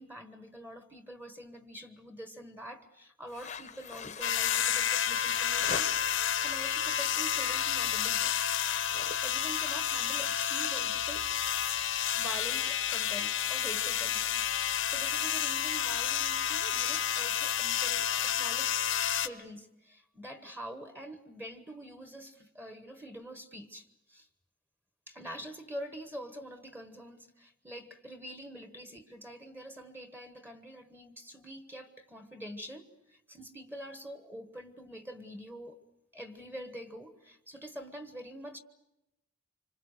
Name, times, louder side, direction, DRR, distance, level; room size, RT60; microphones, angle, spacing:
voice 1, 0.0-8.6 9.2-11.3 12.1-18.9 19.2-24.3 25.1-35.8 36.1-38.6, equal, 10° right, 8 dB, 1.3 m, -46 dB
sound 1, 3.3-6.3 6.7-7.1 7.4-7.7 8.0-8.4 8.6-12.6, left 5 dB, 35° left, 0.9 m, -44 dB
sound 2, 4.2-19.3, left 10 dB, 75° left, 1.1 m, -30 dB
26.5 x 25.0 x 6.6 m, 0.91 s
head